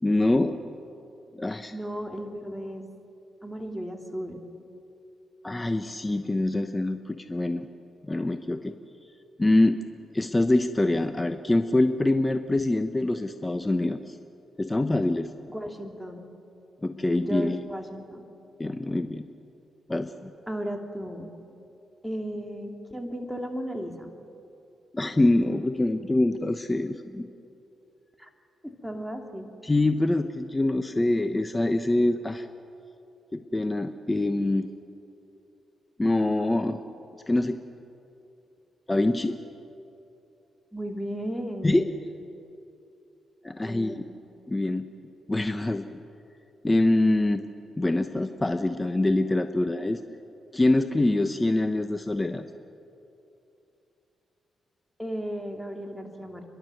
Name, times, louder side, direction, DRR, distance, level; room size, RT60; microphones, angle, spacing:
voice 1, 0.0-0.6 1.4-1.7 5.4-7.7 8.0-8.8 9.4-9.8 10.1-14.2 14.6-15.3 16.8-17.6 18.6-19.2 19.9-20.3 24.9-27.3 29.6-32.5 33.3-34.7 36.0-36.8 37.3-37.6 38.9-39.4 41.6-41.8 43.4-44.0 44.5-44.9 45.3-45.8 46.6-47.4 47.8-50.0 50.5-52.4, left 2 dB, 20° left, 8 dB, 0.9 m, -24 dB
voice 2, 1.7-2.9 3.4-4.4 15.5-16.3 17.2-18.3 20.5-21.3 22.0-24.1 28.2-28.3 28.6-29.5 40.7-41.9 43.6-44.1 55.0-56.4, equal, ahead, 3 dB, 2.7 m, -35 dB
30.0 x 12.0 x 7.9 m, 2.7 s
cardioid pair, 65°, 0 cm